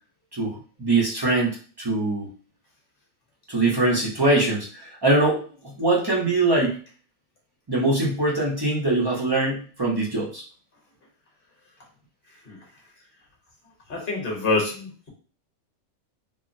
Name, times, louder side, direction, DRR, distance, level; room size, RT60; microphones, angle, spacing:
voice 1, 0.3-2.3 3.5-6.8 7.7-10.4, right 2 dB, 30° right, -4 dB, 0.4 m, -23 dB
voice 2, 12.3-12.7 13.9-15.1, left 3 dB, 40° left, -1 dB, 1.0 m, -27 dB
3.5 x 2.0 x 2.6 m, 0.41 s
omnidirectional pair, 1.6 m